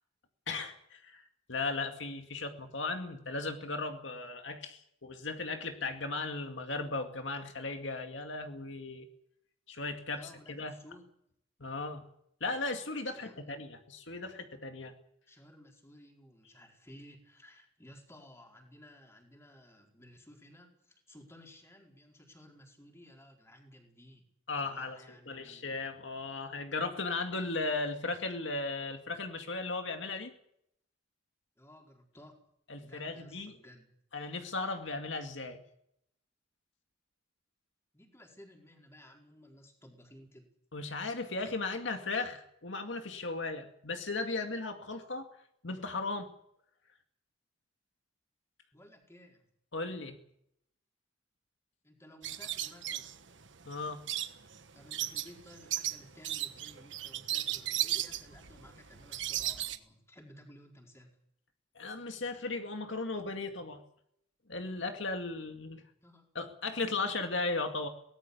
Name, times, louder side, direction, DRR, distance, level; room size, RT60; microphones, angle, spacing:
voice 1, 0.5-9.1 9.7-10.7 11.6-12.0 12.4-14.9 24.5-25.0 25.3-30.3 32.7-33.6 34.1-35.6 40.7-45.3 45.6-46.3 49.7-50.1 53.7-54.0 61.7-63.8 64.5-65.8 66.4-67.9, left 3 dB, 70° left, 5 dB, 2.2 m, -36 dB
voice 2, 10.1-11.1 13.1-13.6 15.3-24.3 24.5-25.8 31.6-32.4 32.8-33.9 37.9-40.5 48.7-49.4 51.8-53.1 54.7-61.1 66.0-66.3 66.8-66.9 67.2-67.3, left 1 dB, 15° left, 1 dB, 4.7 m, -56 dB
sound 1, 52.2-59.8, right 13 dB, 70° right, 1.3 m, -36 dB
23.5 x 18.5 x 7.0 m, 0.72 s
head